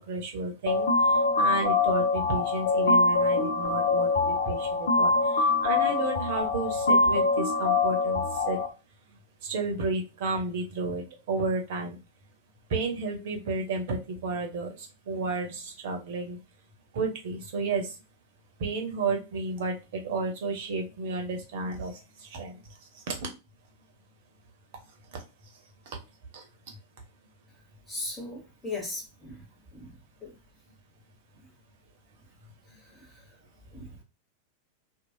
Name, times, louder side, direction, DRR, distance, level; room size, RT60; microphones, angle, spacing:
voice 1, 0.0-8.6 9.4-12.0 12.7-16.4 16.9-17.9 18.6-22.6 22.9-23.1 25.9-26.0 26.3-26.4, right 3 dB, 55° right, 0.9 m, -32 dB
sound 1, 0.7-8.7, left 3 dB, 60° left, 0.6 m, -24 dB
voice 2, 27.9-29.4 29.7-29.9 30.2-30.3 32.8-33.3 33.7-34.0, left 2 dB, 10° left, 1.3 m, -38 dB
3.0 x 2.4 x 2.6 m
figure-of-eight pair, 90°, 0 cm